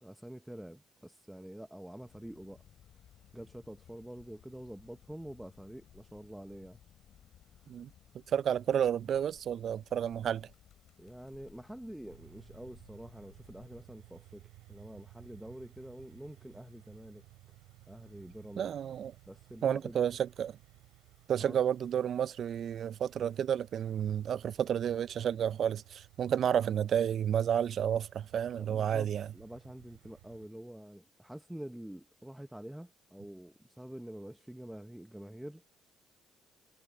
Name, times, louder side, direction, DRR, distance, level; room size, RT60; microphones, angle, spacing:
voice 1, 0.0-2.6 3.3-6.8 11.0-17.2 17.9-18.7 19.3-20.1 21.4-21.6 28.5-35.6, right 1 dB, 5° right, 1.0 m, -47 dB
sound 1, 2.0-13.8, left 10 dB, 65° left, 4.1 m, -61 dB
voice 2, 8.3-10.5 18.6-19.1 19.6-20.6 21.3-29.3, right 9 dB, 55° right, 0.5 m, -31 dB
sound 2, 12.1-30.5, right 19 dB, 90° right, 4.1 m, -58 dB
supercardioid pair, 80°, 0 cm